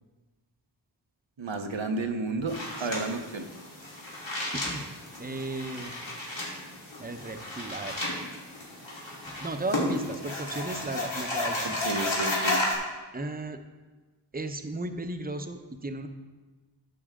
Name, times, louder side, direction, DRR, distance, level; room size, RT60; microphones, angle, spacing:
voice 1, 1.4-3.5 11.8-12.6, right 3 dB, 85° right, 6 dB, 0.9 m, -31 dB
sound 1, 2.5-12.7, left 1 dB, 85° left, 2.5 m, -33 dB
voice 2, 4.5-4.9 5.2-5.9 6.4-6.5 7.0-8.0 9.2-11.9 13.1-13.6 14.3-16.1, right 2 dB, 20° right, 7 dB, 0.8 m, -35 dB
11.0 x 7.8 x 3.7 m, 1.3 s
wide cardioid pair, 45°, 44 cm